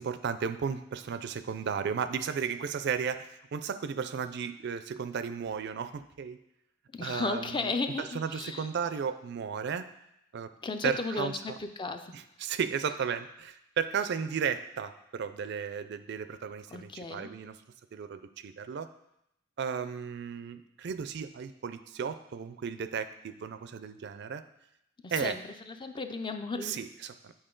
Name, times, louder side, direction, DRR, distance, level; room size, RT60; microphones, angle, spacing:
voice 1, 0.0-6.4 7.0-7.7 8.0-9.9 10.3-10.5 10.8-11.6 12.1-17.6 17.9-18.9 19.6-24.4 25.1-25.4 26.6-27.3, right 6 dB, 60° right, 11 dB, 0.4 m, -34 dB
voice 2, 6.9-8.7 10.6-12.1 16.7-17.3 25.0-25.4 25.7-26.8, left 3 dB, 25° left, 7 dB, 0.4 m, -34 dB
8.8 x 4.3 x 3.8 m, 0.82 s
head